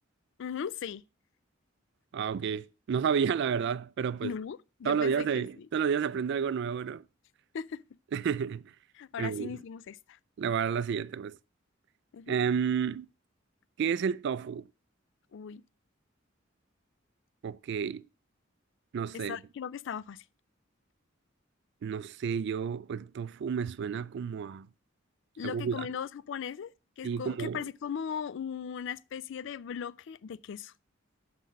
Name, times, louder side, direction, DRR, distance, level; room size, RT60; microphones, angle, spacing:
voice 1, 0.4-1.0 4.2-5.7 7.5-7.8 8.9-10.2 12.1-12.4 15.3-15.6 19.1-20.2 25.4-26.7 27.0-30.7, left 7 dB, 65° left, 0.4 m, -38 dB
voice 2, 2.1-4.3 4.8-7.0 8.1-8.6 9.2-9.6 10.4-11.4 12.3-13.1 13.8-14.6 17.4-18.0 18.9-19.4 21.8-24.7 25.4-25.9 27.0-27.6, right 7 dB, 60° right, 0.3 m, -31 dB
5.9 x 5.2 x 6.3 m
head